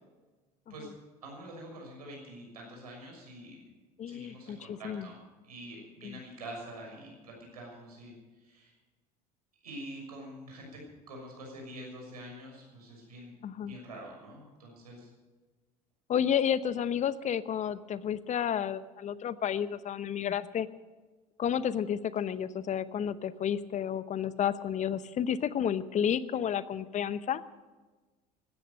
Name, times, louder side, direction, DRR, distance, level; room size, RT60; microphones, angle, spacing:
voice 1, 1.2-3.6 4.1-5.2 5.4-8.7 9.6-10.8 11.1-15.1, right 1 dB, 85° right, 0 dB, 6.4 m, -46 dB
voice 2, 4.0-5.1 6.0-6.2 13.4-13.8 16.1-20.7 21.4-27.6, left 9 dB, 40° left, 15 dB, 0.8 m, -31 dB
16.0 x 13.5 x 6.6 m, 1.3 s
hypercardioid pair, 70°, 19 cm